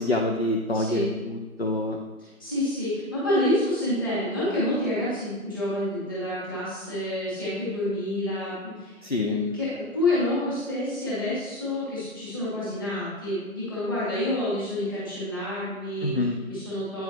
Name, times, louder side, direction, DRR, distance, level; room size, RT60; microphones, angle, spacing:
voice 1, 0.0-2.0 9.0-9.4 16.0-16.4, left 1 dB, 45° left, 1 dB, 0.5 m, -26 dB
voice 2, 0.7-1.1 2.2-16.2 16.5-17.0, left 1 dB, 15° left, -10 dB, 1.9 m, -28 dB
9.0 x 5.7 x 2.8 m, 1.2 s
figure-of-eight pair, 165°, 43 cm